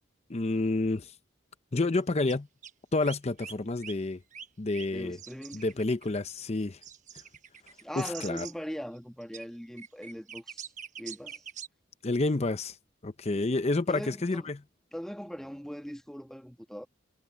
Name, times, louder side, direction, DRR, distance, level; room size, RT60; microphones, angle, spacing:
voice 1, 0.3-1.1 1.7-2.5 2.9-4.2 4.6-5.2 5.5-6.8 8.0-8.5 12.0-12.8 13.0-14.6, left 2 dB, 35° left, 0.7 m, -29 dB
sound 1, 1.9-2.0 2.3-2.4 2.6-2.7 3.0-3.5 3.8-3.9 4.3-4.9 5.2-8.5 9.2-9.4 9.8-11.7, right 8 dB, 40° right, 1.2 m, -44 dB
voice 2, 4.9-5.6 7.8-10.7 11.0-11.4 13.9-14.5 14.9-16.9, equal, 5° left, 1.4 m, -40 dB
head